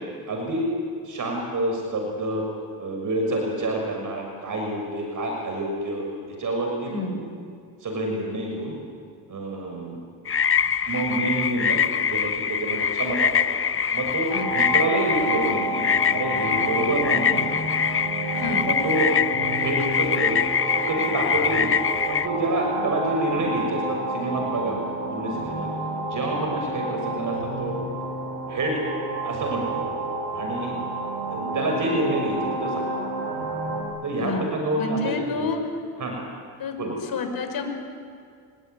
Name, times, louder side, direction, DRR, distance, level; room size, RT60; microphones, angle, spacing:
voice 1, 0.3-0.7 1.0-2.4 2.8-7.1 7.8-8.8 9.3-10.0 10.9-13.4 13.9-17.4 18.5-19.1 19.5-20.4 20.7-21.7 22.1-24.8 25.1-25.7 26.0-27.8 28.5-28.8 29.2-29.9 30.3-30.7 31.3-32.9 34.0-35.5 36.0-36.2 36.8-37.0, right 1 dB, 45° right, 1 dB, 6.4 m, -28 dB
voice 2, 6.9-7.2 14.3-14.8 18.4-18.7 34.1-35.6 36.6-36.8 37.0-37.7, left 3 dB, 55° left, 5 dB, 5.7 m, -30 dB
sound 1, 10.3-22.3, left 7 dB, 30° left, 0.9 m, -24 dB
sound 2, 14.3-33.8, right 2 dB, 80° right, 6.7 m, -30 dB
26.0 x 21.0 x 9.6 m, 2.2 s
supercardioid pair, 70°, 43 cm